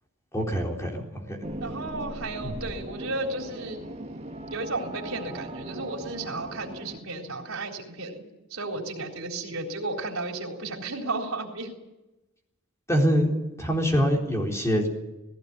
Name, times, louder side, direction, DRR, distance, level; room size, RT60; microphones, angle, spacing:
voice 1, 0.3-1.4 2.4-2.5 12.9-13.3 13.6-14.9, equal, 15° left, 0 dB, 4.1 m, -24 dB
sound 1, 1.4-7.0, right 1 dB, 30° right, 1.8 m, -38 dB
voice 2, 1.6-3.8 4.5-8.2 8.5-11.7, right 2 dB, 85° right, 1 dB, 3.9 m, -33 dB
18.0 x 17.0 x 9.5 m, 1.0 s
head